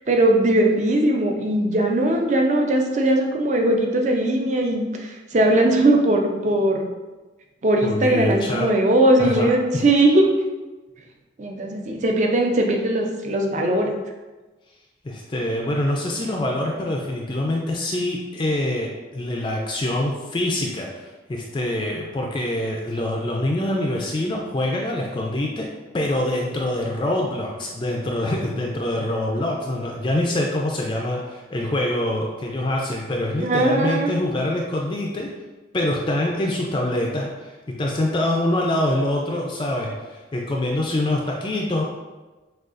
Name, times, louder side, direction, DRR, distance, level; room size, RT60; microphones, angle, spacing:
voice 1, 0.1-6.9 7.6-10.2 11.4-13.9 33.4-34.1, right 1 dB, 40° right, 2 dB, 0.4 m, -19 dB
voice 2, 7.8-8.7 9.2-9.8 15.0-25.7 25.9-35.3 35.7-37.5 37.8-41.8, left 1 dB, 25° left, -1 dB, 0.4 m, -25 dB
6.3 x 2.4 x 2.5 m, 1.2 s
head